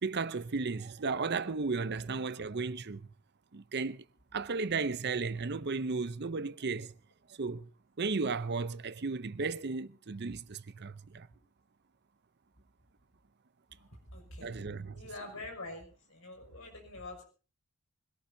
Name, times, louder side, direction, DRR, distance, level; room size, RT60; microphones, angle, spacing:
voice 1, 0.0-3.1 3.5-4.0 4.3-6.9 7.4-7.7 8.0-11.3 14.4-15.0, right 4 dB, 50° right, 0.7 m, -34 dB
voice 2, 14.1-14.5 14.9-17.2, left 2 dB, 65° left, 6.1 m, -45 dB
24.5 x 17.5 x 2.8 m
head